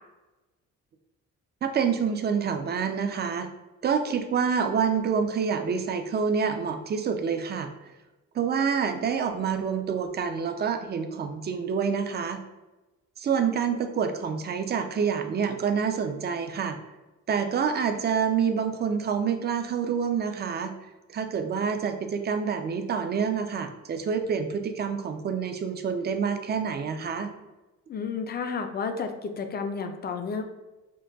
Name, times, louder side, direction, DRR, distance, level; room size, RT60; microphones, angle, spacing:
voice 1, 1.6-3.5 3.8-7.7 8.3-12.4 13.2-16.8 17.3-20.7 21.1-27.3, right 6 dB, 35° right, 7 dB, 0.4 m, -27 dB
voice 2, 27.9-30.4, left 5 dB, 35° left, 7 dB, 0.4 m, -31 dB
3.9 x 2.2 x 2.2 m, 1.1 s
cardioid pair, 90°, 30 cm